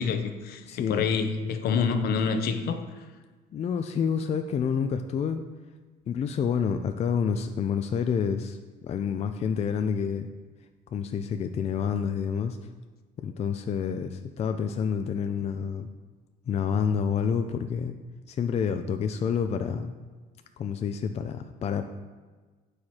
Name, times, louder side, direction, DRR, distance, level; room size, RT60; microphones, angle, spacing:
voice 1, 0.0-2.8, left 5 dB, 65° left, 8 dB, 0.7 m, -27 dB
voice 2, 0.7-1.1 3.5-5.4 6.1-8.6 8.8-10.3 10.9-12.6 13.2-15.9 16.5-18.0 18.3-19.9 20.6-21.9, left 7 dB, 40° left, 7 dB, 0.4 m, -28 dB
7.7 x 4.8 x 4.2 m, 1.4 s
cardioid pair, 110°, 17 cm